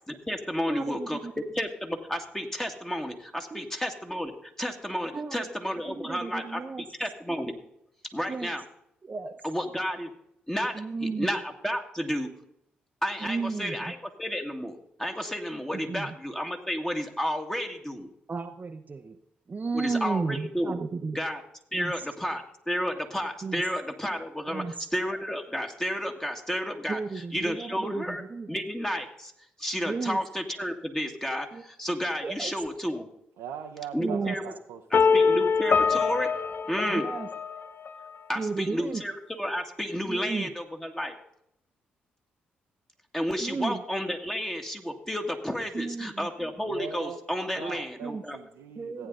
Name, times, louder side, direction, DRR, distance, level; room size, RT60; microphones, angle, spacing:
voice 1, 0.1-7.5 8.1-8.6 9.4-10.1 10.5-12.3 13.0-18.1 19.7-20.8 21.1-21.4 21.7-27.0 27.3-29.3 29.6-33.1 33.9-34.5 34.9-36.3 36.7-37.0 38.3-41.1 43.1-48.4, equal, 10° left, 2.0 m, -32 dB
voice 2, 0.7-1.3 3.5-3.7 5.1-6.9 8.3-8.5 9.0-9.4 10.7-11.3 13.2-13.9 15.7-16.2 18.3-19.2 19.5-21.2 21.7-22.1 23.4-23.6 24.5-24.9 26.9-28.5 29.9-30.2 31.5-31.6 32.2-32.5 34.0-34.4 36.9-37.3 38.3-39.0 40.0-40.5 43.4-43.8 45.7-46.3 48.0-48.2 48.8-49.1, right 4 dB, 35° right, 0.8 m, -33 dB
voice 3, 33.4-35.1 46.5-49.1, right 7 dB, 75° right, 0.9 m, -41 dB
sound 1, 34.9-37.9, left 5 dB, 45° left, 0.6 m, -24 dB
15.5 x 9.1 x 3.9 m
hypercardioid pair, 40°, 5 cm